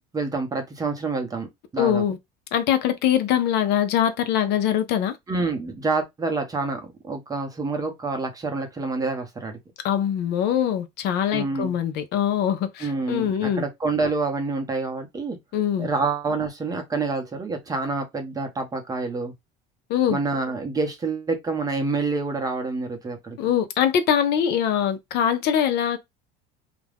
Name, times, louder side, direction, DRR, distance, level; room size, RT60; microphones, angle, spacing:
voice 1, 0.1-2.0 5.3-9.6 11.3-11.8 12.8-15.4 15.8-19.3 20.1-23.4, right 3 dB, 20° right, 0.8 m, -27 dB
voice 2, 1.8-2.2 2.5-5.2 9.8-13.6 15.5-15.9 19.9-20.2 23.4-26.0, left 9 dB, 55° left, 0.6 m, -23 dB
2.5 x 2.2 x 3.3 m
cardioid pair, 135°, 20 cm